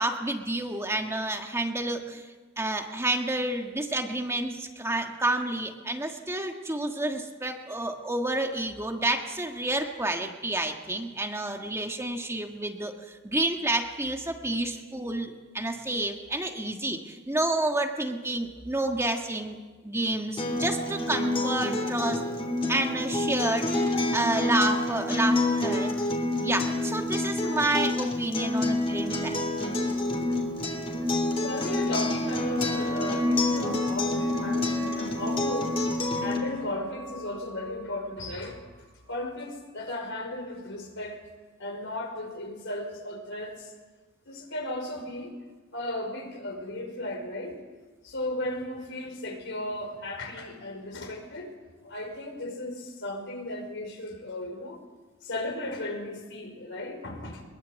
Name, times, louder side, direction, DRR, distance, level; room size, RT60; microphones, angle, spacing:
voice 1, 0.0-2.3 2.6-19.6 19.8-22.2 22.7-25.9 26.4-29.4, right 2 dB, 15° right, 3 dB, 1.5 m, -29 dB
Acoustic guitar, 20.4-36.4, left 2 dB, 30° left, 3.5 m, -28 dB
sound 1, 29.0-39.2, right 1 dB, 75° right, 5.5 m, -42 dB
voice 2, 31.3-35.8 36.2-38.6 39.1-41.2 41.6-43.7 44.3-45.3 45.7-47.6 48.0-51.5 51.8-54.8 55.2-57.4, left 1 dB, 65° left, 3 dB, 5.3 m, -35 dB
22.0 x 22.0 x 8.2 m, 1.3 s
head